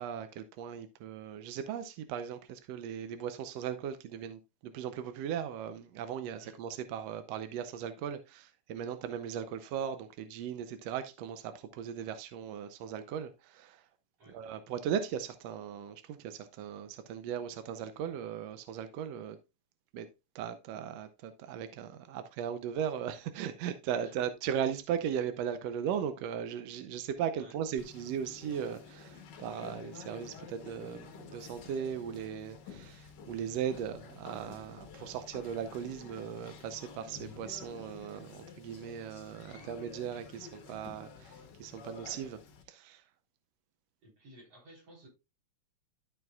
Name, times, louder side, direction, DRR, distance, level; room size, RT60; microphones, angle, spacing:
voice 1, 0.0-13.9 14.3-19.4 19.9-20.1 20.3-42.4 42.7-43.0, right 8 dB, 75° right, 1.6 m, -38 dB
Conversation, 27.8-42.6, left 6 dB, 60° left, 1.1 m, -50 dB
voice 2, 44.0-45.1, right 1 dB, 50° right, 4.8 m, -55 dB
12.0 x 6.2 x 2.3 m
omnidirectional pair, 3.4 m